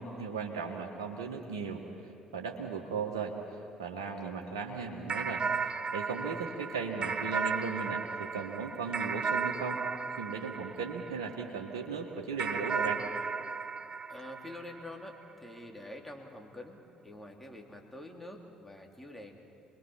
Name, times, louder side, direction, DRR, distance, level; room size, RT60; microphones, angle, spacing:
voice 1, 0.0-1.8 2.3-3.3 3.8-9.8 10.2-13.0, right 5 dB, 80° right, 1 dB, 1.6 m, -37 dB
sound 1, 5.1-11.7 12.4-15.1, right 5 dB, 40° right, 0.7 m, -35 dB
voice 2, 14.1-19.4, left 1 dB, 10° left, 1 dB, 3.6 m, -46 dB
28.0 x 21.5 x 5.8 m, 2.6 s
hypercardioid pair, 55°, 3 cm